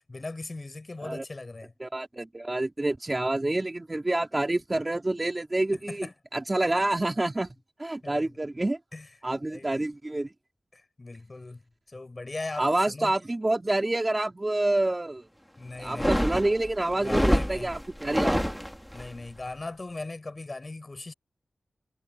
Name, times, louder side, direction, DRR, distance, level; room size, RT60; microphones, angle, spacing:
voice 1, 0.1-1.7 5.9-6.1 8.0-8.3 8.9-9.1 9.5-9.8 10.7-11.6 11.9-13.1 15.6-16.2 16.9-17.7 18.9-21.1, left 2 dB, 30° left, 6.5 m, -39 dB
voice 2, 1.8-7.5 7.8-8.8 9.2-10.3 12.6-15.2 15.8-18.5, right 2 dB, 20° right, 3.0 m, -28 dB
sound 1, 15.8-19.1, equal, ahead, 3.5 m, -27 dB
wide cardioid pair, 125°, 0 cm